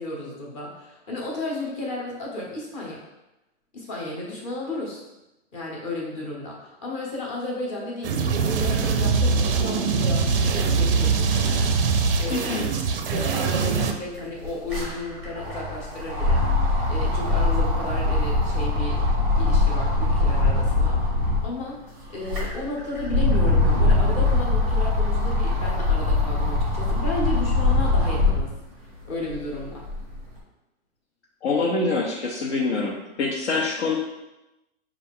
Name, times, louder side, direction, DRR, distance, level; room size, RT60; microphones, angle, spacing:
voice 1, 0.0-3.0 3.7-5.0 5.5-11.7 12.2-12.5 13.1-16.4 16.9-19.0 19.4-21.0 21.4-21.8 22.1-28.5 28.8-29.9, left 2 dB, 25° left, -3 dB, 0.9 m, -33 dB
sound 1, 8.0-13.9, right 5 dB, 50° right, 0.4 m, -22 dB
voice 2, 12.3-12.7 31.4-34.0, left 3 dB, 65° left, -2 dB, 0.7 m, -25 dB
sound 2, 13.4-13.5 13.7-21.5 22.0-28.5 29.0-30.2, left 2 dB, 5° right, 0.6 m, -22 dB
5.6 x 2.4 x 3.5 m, 0.96 s
hypercardioid pair, 170°, 37 cm